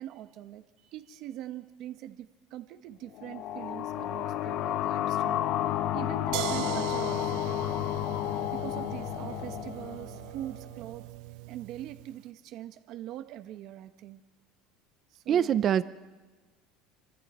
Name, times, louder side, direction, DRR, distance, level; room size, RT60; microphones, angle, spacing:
voice 1, 0.0-5.4 5.9-7.5 8.3-11.0 11.5-14.2 15.1-15.6, right 12 dB, 50° right, 8 dB, 1.1 m, -42 dB
sound 1, 3.1-10.6, left 12 dB, 45° left, 0.7 m, -31 dB
sound 2, 6.3-12.1, right 16 dB, 70° right, 0.8 m, -40 dB
voice 2, 15.3-15.8, right 9 dB, 35° right, 15 dB, 0.5 m, -24 dB
27.0 x 24.0 x 4.4 m, 1.3 s
cardioid pair, 160°, 0 cm